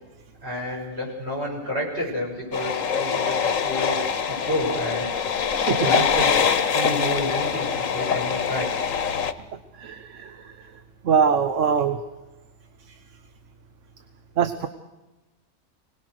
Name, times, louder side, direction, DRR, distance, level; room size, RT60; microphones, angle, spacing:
voice 1, 0.4-4.0 4.3-5.1 5.7-6.3 6.7-8.8, left 1 dB, 55° right, -2 dB, 7.2 m, -29 dB
sound 1, 2.5-9.3, left 6 dB, 85° left, 1.4 m, -24 dB
voice 2, 5.5-5.9 9.8-10.7 11.0-12.0 14.4-14.7, right 6 dB, 70° right, 9 dB, 1.3 m, -23 dB
25.0 x 18.5 x 6.5 m, 1.1 s
omnidirectional pair, 1.3 m